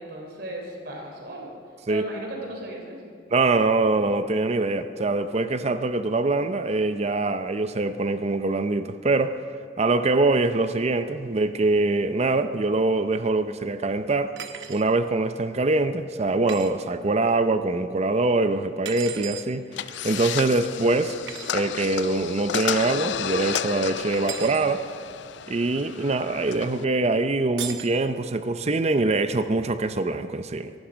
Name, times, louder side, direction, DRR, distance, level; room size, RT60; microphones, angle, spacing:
voice 1, 0.0-1.5 1.9-3.0, right 1 dB, 60° right, 0 dB, 3.5 m, -35 dB
voice 2, 3.3-9.4 9.8-14.4 14.7-19.7 20.0-21.1 21.5-24.8 25.5-30.7, right 2 dB, 35° right, 10 dB, 0.6 m, -23 dB
sound 1, 14.4-14.8 16.5-16.7 18.8-19.5 21.3-21.5 24.1-24.7 27.6-27.9, right 9 dB, 85° right, 1.1 m, -36 dB
sound 2, 19.7-26.8, left 8 dB, 80° left, 0.5 m, -32 dB
23.5 x 11.5 x 5.1 m, 2.2 s
head